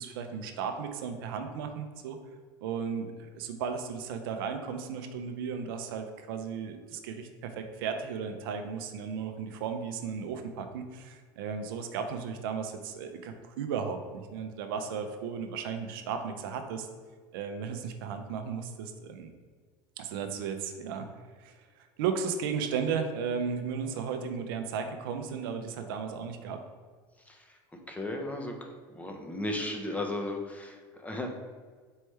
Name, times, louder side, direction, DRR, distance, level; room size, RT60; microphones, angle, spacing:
voice 1, 0.0-2.2 2.6-16.9 17.3-19.3 20.0-21.1 21.4-26.6, right 6 dB, 85° right, 6 dB, 0.5 m, -35 dB
voice 2, 27.9-31.3, left 1 dB, 10° left, 3 dB, 0.6 m, -35 dB
4.5 x 3.2 x 3.2 m, 1.5 s
supercardioid pair, 110°, 12 cm